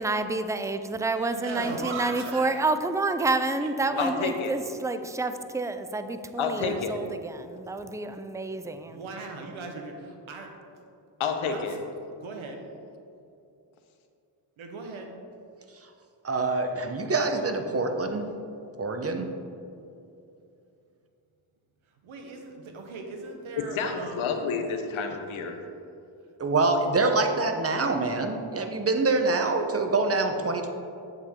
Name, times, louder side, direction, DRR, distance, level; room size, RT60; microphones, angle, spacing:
voice 1, 0.0-9.0, right 3 dB, 5° right, 9 dB, 0.4 m, -29 dB
voice 2, 1.2-2.6 3.6-4.1 8.7-10.7 11.4-11.7 12.1-12.7 14.6-15.1 22.0-24.3, right 3 dB, 85° right, 3 dB, 1.2 m, -38 dB
voice 3, 4.0-4.5 6.4-7.0 11.2-11.8 23.7-25.6, left 5 dB, 90° left, 5 dB, 1.0 m, -29 dB
voice 4, 16.2-18.3 18.8-19.3 26.4-30.7, right 3 dB, 30° right, 5 dB, 0.9 m, -25 dB
8.2 x 7.4 x 3.7 m, 2.7 s
cardioid pair, 70°, 47 cm